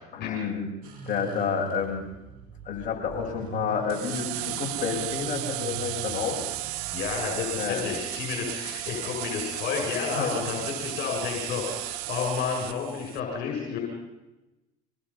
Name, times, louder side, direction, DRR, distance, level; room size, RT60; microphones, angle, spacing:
voice 1, 0.1-0.7 1.1-2.0 2.7-6.4 7.6-7.9 10.1-10.4, left 6 dB, 45° left, -1 dB, 7.1 m, -30 dB
sound 1, 0.8-9.2, right 8 dB, 50° right, 6.7 m, -43 dB
sound 2, 3.9-13.2, right 16 dB, 85° right, 0.8 m, -34 dB
voice 2, 6.9-13.8, left 6 dB, 60° left, 0 dB, 6.7 m, -31 dB
25.5 x 19.5 x 5.6 m, 1.0 s
supercardioid pair, 90°, 19 cm